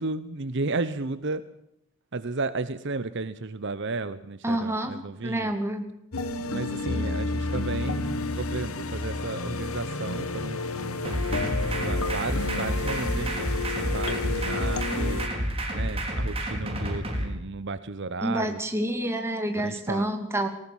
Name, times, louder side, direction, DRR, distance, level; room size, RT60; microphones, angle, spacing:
voice 1, 0.0-1.4 2.1-5.5 6.4-11.5 11.8-15.3 15.7-18.6 19.5-20.1, right 3 dB, 55° right, 14 dB, 0.9 m, -33 dB
voice 2, 4.4-5.0 5.2-5.8 18.2-20.5, right 1 dB, 10° right, 5 dB, 2.7 m, -28 dB
sound 1, 6.1-15.3, left 3 dB, 80° left, 1.7 m, -31 dB
sound 2, 11.0-17.2, equal, 25° right, 4.6 m, -29 dB
19.5 x 19.0 x 7.2 m, 0.77 s
head